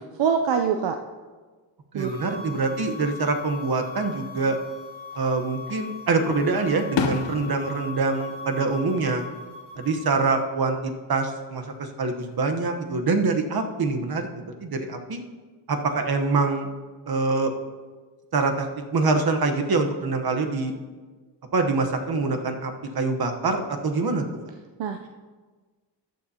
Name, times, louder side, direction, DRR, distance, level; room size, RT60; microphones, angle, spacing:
voice 1, 0.2-0.9 1.9-2.4 24.8-25.0, right 7 dB, 75° right, 5 dB, 0.6 m, -24 dB
voice 2, 1.9-4.6 5.2-9.2 9.8-15.2 15.7-16.7 17.1-17.5 18.3-18.7 18.9-20.7 21.5-24.2, right 3 dB, 55° right, 5 dB, 1.1 m, -25 dB
sound 1, 2.0-10.1, left 5 dB, 15° left, 2.8 m, -40 dB
Fireworks, 5.1-5.8 6.3-9.4 9.7-10.3 11.8-12.7, left 6 dB, 75° left, 0.8 m, -33 dB
14.0 x 9.4 x 2.8 m, 1.4 s
wide cardioid pair, 110°, 44 cm